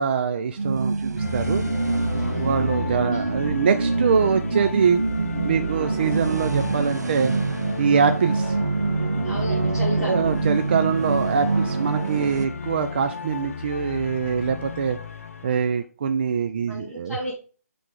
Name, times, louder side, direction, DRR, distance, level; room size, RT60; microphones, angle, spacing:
voice 1, 0.0-1.6 2.4-5.0 5.4-7.3 7.8-8.6 10.0-15.0 15.4-17.2, right 6 dB, 40° right, 7 dB, 0.4 m, -24 dB
sound 1, 0.6-12.5, right 3 dB, 90° right, 0.5 m, -25 dB
sound 2, 1.2-15.7, left 7 dB, 55° left, 0.5 m, -34 dB
voice 2, 2.1-2.5 3.1-3.2 9.2-10.3 16.7-17.3, equal, 5° right, -12 dB, 1.8 m, -33 dB
5.8 x 3.4 x 4.9 m, 0.38 s
hypercardioid pair, 155°, 9 cm